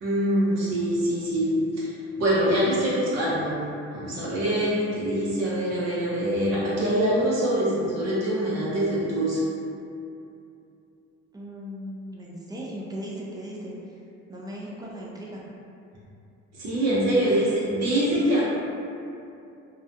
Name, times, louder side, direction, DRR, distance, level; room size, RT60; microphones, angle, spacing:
voice 1, 0.0-1.9 2.2-9.4 16.6-18.4, right 1 dB, 60° right, -8 dB, 0.8 m, -24 dB
voice 2, 11.3-13.7 14.3-15.4, equal, 15° right, -4 dB, 0.5 m, -37 dB
2.3 x 2.2 x 2.8 m, 2.6 s
cardioid pair, 90°, 30 cm